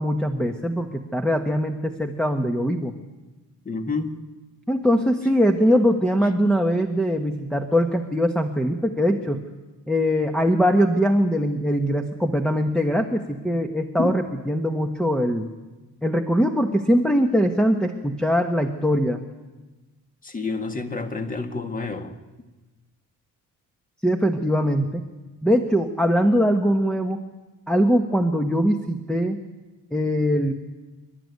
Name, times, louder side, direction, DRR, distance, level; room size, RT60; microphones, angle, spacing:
voice 1, 0.0-2.9 4.7-9.4 9.9-15.5 16.0-19.2 24.0-25.0 25.4-27.2 27.7-29.4 29.9-30.5, equal, 5° left, 2 dB, 1.2 m, -22 dB
voice 2, 3.7-4.1 14.0-14.2 20.2-22.1, left 3 dB, 25° left, 6 dB, 1.9 m, -29 dB
27.5 x 12.5 x 9.4 m, 1.2 s
cardioid pair, 125°, 35 cm